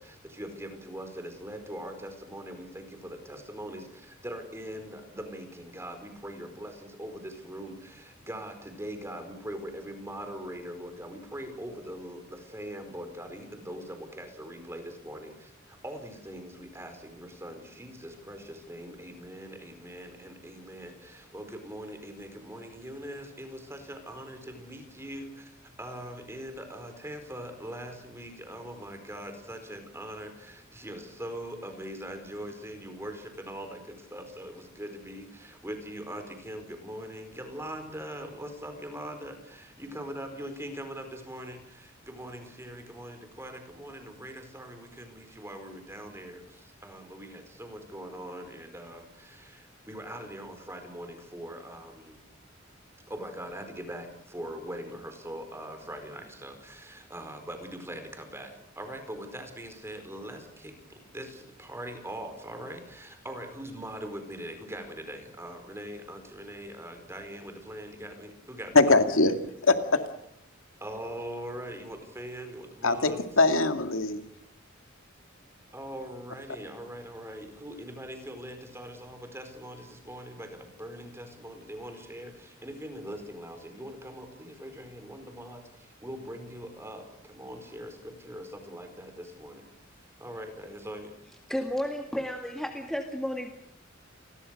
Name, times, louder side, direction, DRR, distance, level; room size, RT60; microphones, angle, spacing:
voice 1, 0.0-52.2 53.1-68.8 70.8-73.3 75.7-91.1, equal, 15° right, 4.7 m, -42 dB
voice 2, 68.8-69.4 69.7-69.8 72.8-74.2, left 3 dB, 85° left, 2.3 m, -21 dB
voice 3, 91.5-93.5, equal, ahead, 2.0 m, -32 dB
29.0 x 21.5 x 6.5 m
head